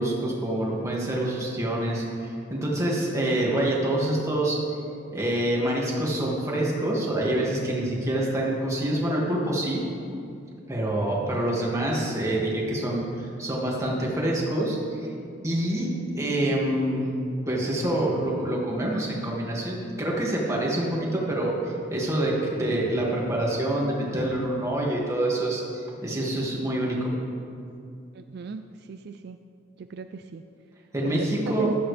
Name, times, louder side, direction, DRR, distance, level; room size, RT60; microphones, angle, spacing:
voice 1, 0.0-4.6 5.1-9.8 10.7-15.1 15.4-17.0 17.5-27.1 30.9-31.7, right 1 dB, 15° right, -4 dB, 2.2 m, -26 dB
voice 2, 28.1-29.4 29.8-30.4 31.0-31.8, right 5 dB, 60° right, 8 dB, 0.4 m, -37 dB
15.0 x 12.0 x 3.4 m, 2.6 s
head